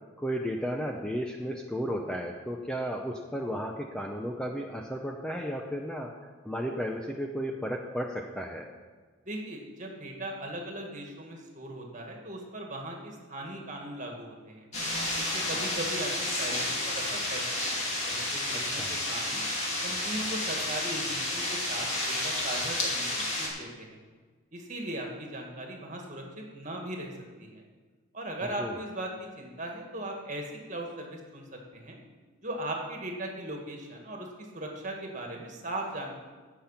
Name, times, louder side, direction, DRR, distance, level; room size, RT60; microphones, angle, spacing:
voice 1, 0.2-8.7 18.5-19.0 28.4-28.8, equal, 5° left, 1 dB, 0.6 m, -34 dB
voice 2, 9.3-14.7 15.2-17.4 17.7-19.4 19.8-24.0 24.5-27.1 27.4-27.6 28.1-31.5 31.7-32.0 32.4-34.3 34.5-36.1, right 1 dB, 35° right, 1 dB, 1.9 m, -38 dB
sound 1, 14.7-23.5, left 1 dB, 35° left, 2.4 m, -31 dB
15.5 x 6.0 x 5.7 m, 1.4 s
head